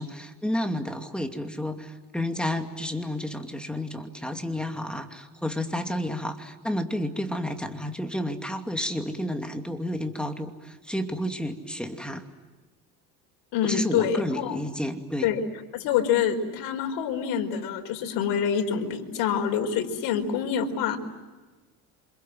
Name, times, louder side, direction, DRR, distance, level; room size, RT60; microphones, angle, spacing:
voice 1, 0.0-12.2 13.6-15.3, left 1 dB, ahead, 4 dB, 2.5 m, -31 dB
voice 2, 13.5-14.6 15.2-15.4 15.7-21.0, left 8 dB, 70° left, 3 dB, 4.8 m, -26 dB
28.0 x 27.0 x 7.7 m, 1.3 s
cardioid pair, 120°, 39 cm